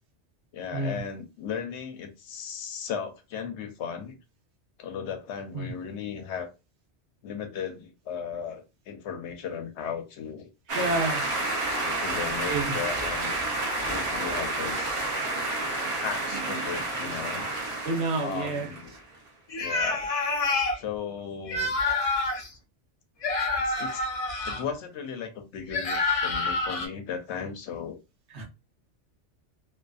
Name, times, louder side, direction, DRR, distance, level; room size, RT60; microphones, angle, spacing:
voice 1, 0.5-4.2 4.8-6.5 7.2-10.5 11.8-13.3 13.8-15.0 16.0-17.5 18.2-18.9 19.6-20.2 20.8-21.7 23.6-24.1 24.5-28.0, left 7 dB, 75° left, 0.8 m, -36 dB
sound 1, 10.7-19.0, right 2 dB, 35° right, 0.5 m, -30 dB
voice 2, 10.7-11.2 12.4-12.7 17.8-18.7 28.3-28.4, right 2 dB, 70° right, 1.1 m, -29 dB
sound 2, 19.5-20.8 21.5-22.5 23.2-24.6 25.7-26.9, left 3 dB, 50° left, 0.4 m, -27 dB
2.5 x 2.4 x 2.3 m
omnidirectional pair, 1.2 m